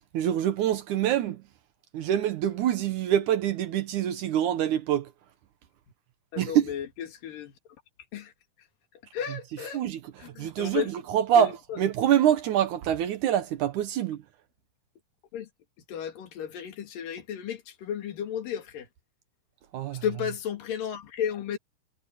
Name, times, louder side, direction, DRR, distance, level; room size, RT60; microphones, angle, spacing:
voice 1, 0.1-1.4 1.9-5.1 6.4-6.7 9.7-11.5 11.8-14.2 19.7-20.0, right 10 dB, 70° right, 2.3 m, -25 dB
voice 2, 6.3-7.6 8.1-8.3 9.1-9.8 10.2-10.9 11.4-11.8 15.3-15.5 15.9-18.9 20.0-21.6, left 8 dB, 90° left, 3.8 m, -33 dB
omnidirectional pair, 3.8 m